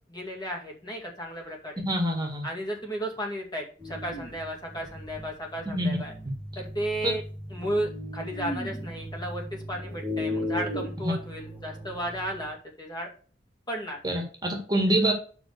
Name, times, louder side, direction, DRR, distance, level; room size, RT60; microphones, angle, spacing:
voice 1, 0.1-1.8 2.4-6.1 6.6-7.2 7.5-13.1 13.7-14.0, equal, 25° left, -1 dB, 2.2 m, -34 dB
voice 2, 1.9-2.4 5.8-5.9 11.0-11.1 14.0-15.1, right 1 dB, 25° right, 2 dB, 1.9 m, -25 dB
sound 1, 3.8-12.5, left 1 dB, 10° left, 1.6 m, -36 dB
6.0 x 5.0 x 6.7 m, 0.40 s
head